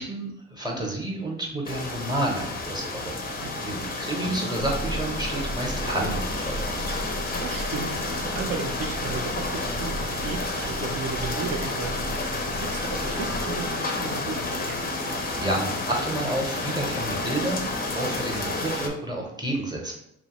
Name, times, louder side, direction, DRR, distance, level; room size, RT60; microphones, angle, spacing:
voice 1, 0.0-3.2 3.6-6.8 15.4-17.6 17.9-19.9, right 1 dB, 15° right, -1 dB, 0.7 m, -30 dB
sound 1, 1.6-18.9, left 2 dB, 30° left, 0.5 m, -30 dB
voice 2, 3.4-3.9 7.4-14.9, right 4 dB, 55° right, 4 dB, 0.5 m, -35 dB
sound 2, 4.2-6.6, left 2 dB, 90° left, 0.7 m, -42 dB
sound 3, 4.6-13.7, right 1 dB, 85° right, 0.8 m, -36 dB
2.9 x 2.3 x 2.9 m, 0.80 s
cardioid pair, 90°, 30 cm